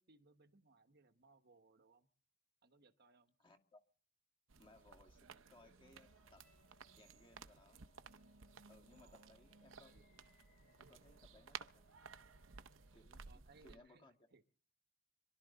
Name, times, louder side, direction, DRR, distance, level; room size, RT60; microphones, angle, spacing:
voice 1, 0.0-2.1 2.6-3.3 8.9-9.3 13.1-14.4, right 3 dB, 50° right, 1.1 m, -68 dB
voice 2, 3.4-3.8 4.6-6.5 7.0-7.8 8.7-10.0 10.8-11.8 12.9-14.1, left 2 dB, 25° left, 2.1 m, -65 dB
sound 1, 4.5-13.8, right 6 dB, 70° right, 0.8 m, -57 dB
sound 2, 6.0-12.9, left 1 dB, 50° left, 5.3 m, -74 dB
26.5 x 12.5 x 4.0 m
head